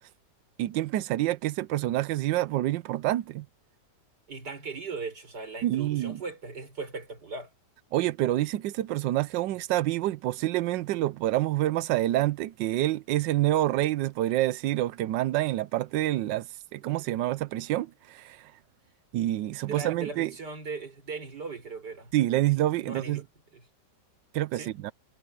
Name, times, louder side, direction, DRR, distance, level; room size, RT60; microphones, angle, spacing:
voice 1, 0.6-3.5 5.6-6.2 7.9-18.5 19.1-20.3 22.1-23.2 24.3-24.9, right 15 dB, 85° right, 1.3 m, -27 dB
voice 2, 4.3-7.5 16.9-17.0 19.7-22.1 22.8-23.3 23.5-23.6 24.5-24.7, right 4 dB, 65° right, 5.9 m, -38 dB
omnidirectional pair, 1.9 m